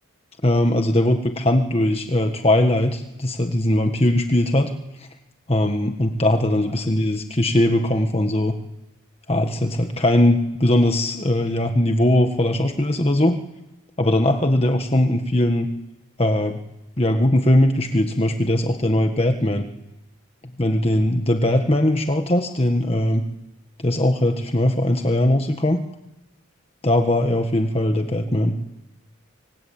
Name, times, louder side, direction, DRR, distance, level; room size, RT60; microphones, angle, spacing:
voice 1, 0.4-4.7 5.5-8.5 9.3-13.4 14.0-15.7 16.2-16.6 17.0-19.7 20.6-23.3 23.8-25.8 26.8-28.6, left 1 dB, 30° left, 5 dB, 1.5 m, -20 dB
25.5 x 24.5 x 8.7 m, 0.91 s
head